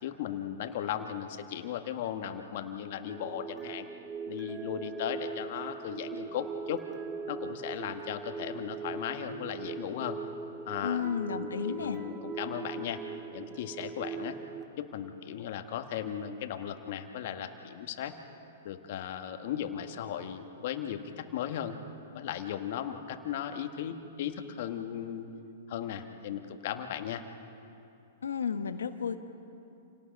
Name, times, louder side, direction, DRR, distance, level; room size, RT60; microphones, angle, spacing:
voice 1, 0.0-3.9 4.3-6.8 7.3-10.2 10.7-11.0 11.3-13.0 13.3-14.3 14.8-18.1 18.6-21.7 22.1-25.3 25.7-27.2, left 10 dB, 60° left, 6 dB, 1.7 m, -36 dB
sound 1, 3.1-14.6, right 5 dB, 20° right, 1.1 m, -40 dB
voice 2, 10.8-12.0 28.2-29.2, left 7 dB, 90° left, 9 dB, 1.3 m, -32 dB
28.5 x 18.5 x 5.4 m, 2.7 s
hypercardioid pair, 125°, 0 cm